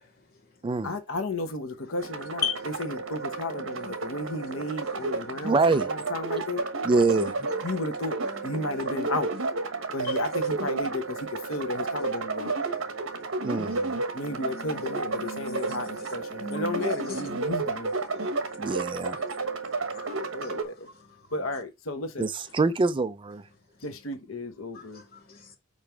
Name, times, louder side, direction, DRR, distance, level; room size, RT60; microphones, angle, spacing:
voice 1, 0.8-2.5 2.8-6.6 7.6-9.3 9.9-12.5 14.1-17.9 20.3-20.9 21.3-22.2 23.8-25.0, left 2 dB, 80° left, 1.2 m, -33 dB
sound 1, 2.0-20.6, right 3 dB, 70° right, 1.2 m, -32 dB
voice 2, 3.7-5.5 6.3-6.4 7.2-7.3 7.6-7.8 8.2-8.8 10.0-10.2 12.6-12.8 14.2-17.2 18.2-18.3 18.7-18.8 19.9-20.9 24.7-25.6, left 5 dB, 50° left, 2.4 m, -39 dB
voice 3, 5.4-5.9 6.8-7.3 13.4-14.0 18.6-19.2 22.2-23.4, right 3 dB, 25° right, 0.4 m, -25 dB
5.4 x 4.9 x 4.4 m
head